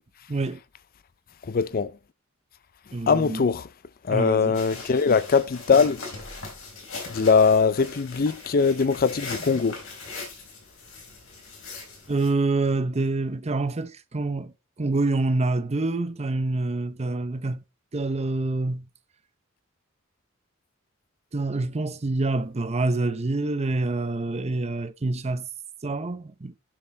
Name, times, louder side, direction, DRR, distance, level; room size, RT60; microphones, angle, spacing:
voice 1, 0.3-0.6 2.9-3.4 4.1-4.6 12.1-14.5 14.8-17.6 17.9-18.9 21.3-25.5 25.8-26.6, right 2 dB, 30° right, 0.7 m, -26 dB
voice 2, 1.5-1.9 3.1-3.7 4.1-6.0 7.1-9.8, left 5 dB, 45° left, 0.5 m, -21 dB
sound 1, 4.5-12.3, left 3 dB, 65° left, 4.0 m, -40 dB
8.7 x 6.6 x 3.8 m
head